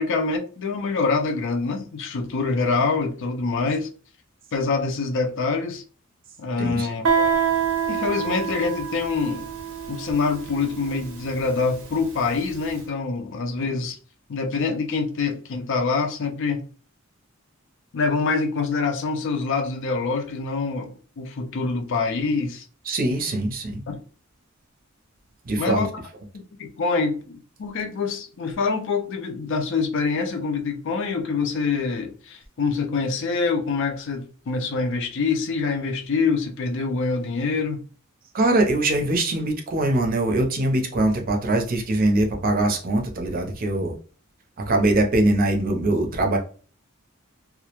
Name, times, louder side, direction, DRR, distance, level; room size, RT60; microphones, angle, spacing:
voice 1, 0.0-3.9 4.5-5.8 6.4-7.3 7.9-9.5 9.9-14.0 14.3-16.6 17.9-22.6 23.9-24.0 25.6-25.9 26.3-37.8, left 4 dB, 60° left, 0.5 m, -25 dB
Guitar, 7.0-12.5, right 7 dB, 85° right, 0.7 m, -26 dB
voice 2, 22.9-23.8 25.5-25.8 38.3-44.0 44.7-46.4, right 2 dB, 45° right, 0.5 m, -22 dB
2.3 x 2.0 x 2.8 m
head